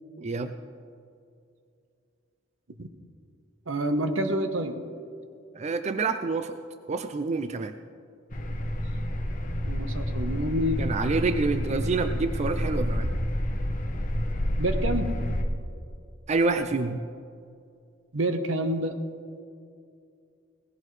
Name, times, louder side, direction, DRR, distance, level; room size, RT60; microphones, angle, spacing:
voice 1, 0.2-0.5 5.6-6.6 6.9-7.7 10.8-13.1 16.3-17.0, right 4 dB, 35° right, 9 dB, 0.4 m, -27 dB
voice 2, 3.7-4.8 9.6-10.8 14.6-15.1 18.1-18.9, right 1 dB, 75° right, 7 dB, 1.1 m, -28 dB
sound 1, 8.3-15.4, equal, 40° left, 1.0 m, -29 dB
18.0 x 15.5 x 3.3 m, 2.4 s
head